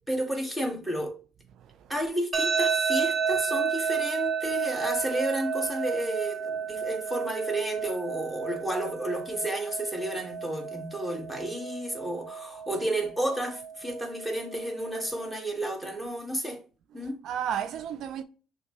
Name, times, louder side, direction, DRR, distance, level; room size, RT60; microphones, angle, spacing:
voice 1, 0.1-1.2 1.9-16.6 16.9-17.2, right 1 dB, ahead, 1.5 m, -32 dB
voice 2, 1.5-1.9 17.0-18.2, right 9 dB, 65° right, 0.3 m, -34 dB
sound 1, 2.3-15.3, right 6 dB, 30° right, 0.9 m, -31 dB
6.4 x 2.2 x 3.0 m
supercardioid pair, 70°, 0 cm